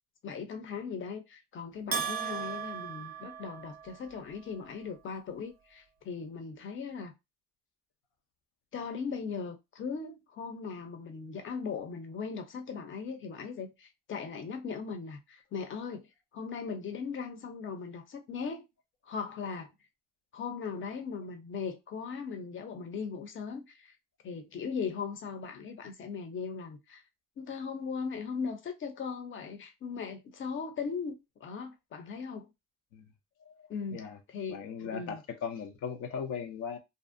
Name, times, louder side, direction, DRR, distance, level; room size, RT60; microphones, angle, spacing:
voice 1, 0.2-7.1 8.7-16.1 16.3-18.6 19.0-19.7 20.3-23.9 24.2-27.0 27.4-31.2 31.4-32.5 33.7-34.0 34.3-35.2, left 5 dB, 40° left, 0.6 m, -38 dB
Bell, 1.9-4.1, right 6 dB, 30° right, 0.5 m, -36 dB
voice 2, 33.5-34.2 34.5-36.8, left 6 dB, 85° left, 0.6 m, -38 dB
2.5 x 2.0 x 2.5 m
cardioid pair, 90°, 30 cm